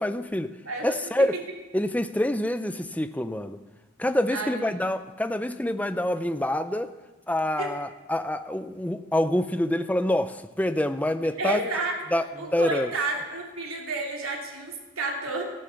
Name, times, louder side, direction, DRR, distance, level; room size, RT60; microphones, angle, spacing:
voice 1, 0.0-0.6 0.8-1.4 1.7-3.6 4.0-6.9 7.3-11.6 12.1-12.9, left 1 dB, 5° left, 10 dB, 0.5 m, -26 dB
voice 2, 0.7-1.4 4.3-4.7 7.6-7.7 11.4-12.0 12.4-15.4, right 3 dB, 85° right, 0 dB, 3.1 m, -31 dB
14.5 x 11.0 x 6.9 m, 1.2 s
head